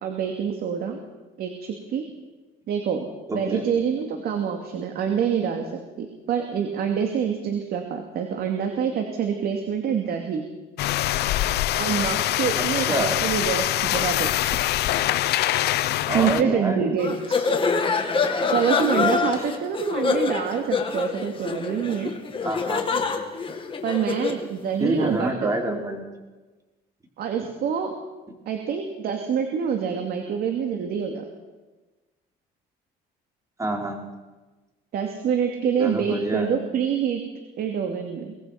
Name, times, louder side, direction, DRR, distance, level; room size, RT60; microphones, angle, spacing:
voice 1, 0.0-1.0 1.4-2.0 2.7-10.5 11.8-14.6 16.1-17.4 18.5-22.1 23.8-25.6 27.2-27.9 28.5-31.2 34.9-37.2 37.6-38.3, right 7 dB, 65° right, 4 dB, 2.5 m, -26 dB
voice 2, 3.3-3.6 12.6-13.2 16.1-16.9 22.4-22.8 24.8-26.0 33.6-34.0 35.8-36.6, right 1 dB, 20° right, 2 dB, 4.7 m, -27 dB
sound 1, 10.8-16.4, left 14 dB, 75° left, 0.9 m, -24 dB
sound 2, 17.0-24.4, left 5 dB, 30° left, 2.5 m, -25 dB
23.5 x 19.5 x 5.9 m, 1.2 s
cardioid pair, 110°, 17 cm